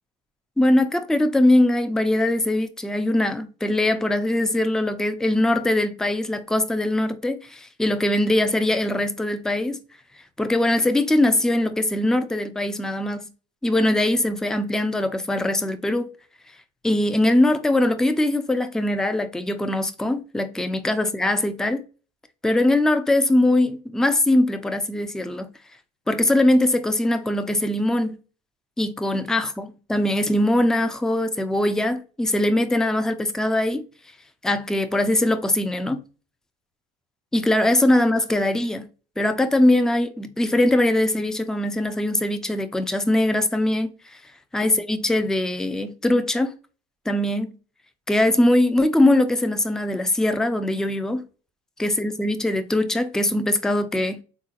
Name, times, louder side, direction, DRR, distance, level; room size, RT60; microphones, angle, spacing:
voice 1, 0.6-9.8 10.4-13.3 13.6-16.1 16.8-21.8 22.4-25.5 26.1-28.2 28.8-33.8 34.4-36.0 37.3-38.9 39.2-43.9 44.5-46.6 47.1-47.5 48.1-51.2 51.8-54.2, left 1 dB, 5° left, 0.4 m, -21 dB
3.7 x 2.4 x 2.8 m
supercardioid pair, 95°, 19 cm